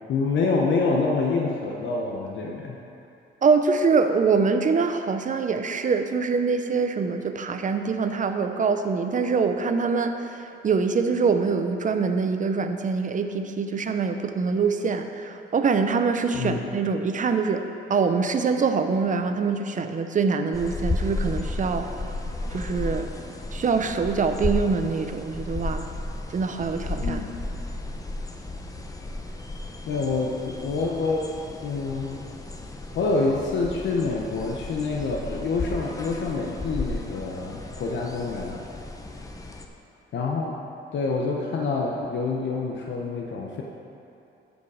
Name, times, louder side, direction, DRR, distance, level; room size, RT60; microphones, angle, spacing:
voice 1, 0.1-2.8 16.3-16.6 27.0-27.3 29.9-31.3 31.6-32.2 32.9-38.6 40.1-40.6 40.9-43.6, left 3 dB, 70° left, -1 dB, 0.9 m, -27 dB
voice 2, 3.4-21.9 22.5-23.1 23.5-25.8 26.3-27.2, right 5 dB, 40° right, 7 dB, 0.7 m, -24 dB
sound 1, 20.5-39.6, left 2 dB, 15° left, 0.9 m, -34 dB
13.5 x 5.2 x 4.8 m, 2.8 s
cardioid pair, 90°, 20 cm